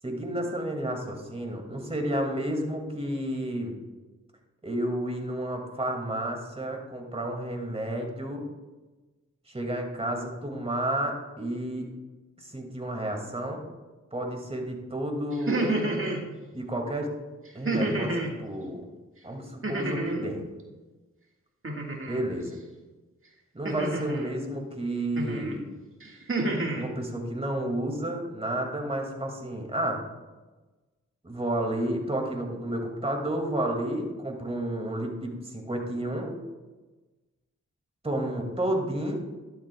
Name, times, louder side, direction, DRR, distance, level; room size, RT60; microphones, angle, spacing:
voice 1, 0.0-3.7 4.6-8.4 9.5-11.9 12.4-13.6 14.1-15.6 16.5-17.1 17.5-18.8 19.2-20.4 22.1-22.6 23.5-25.7 26.7-30.0 31.2-36.4 38.0-39.2, right 1 dB, 20° right, 2 dB, 2.2 m, -31 dB
sound 1, 15.3-16.2 17.7-18.3 19.6-20.3 21.6-22.2 23.7-24.3 25.2-25.5 26.0-26.8, right 2 dB, 45° right, 1.7 m, -29 dB
11.5 x 7.9 x 2.3 m, 1.2 s
cardioid pair, 40°, 30 cm